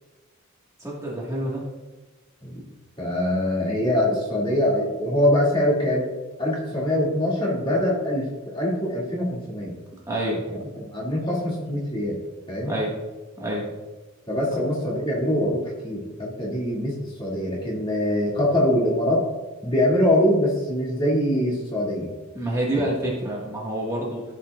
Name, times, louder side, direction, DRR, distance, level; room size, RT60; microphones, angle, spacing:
voice 1, 0.8-1.6 10.1-10.4 12.6-12.9 13.4-13.6 22.3-24.2, right 1 dB, 15° right, -5 dB, 1.7 m, -27 dB
voice 2, 3.0-6.1 6.4-9.8 10.5-12.2 12.5-12.7 14.3-19.3 19.6-22.1 22.7-22.8, left 1 dB, 25° left, -4 dB, 2.4 m, -23 dB
15.0 x 5.8 x 2.4 m, 1.2 s
head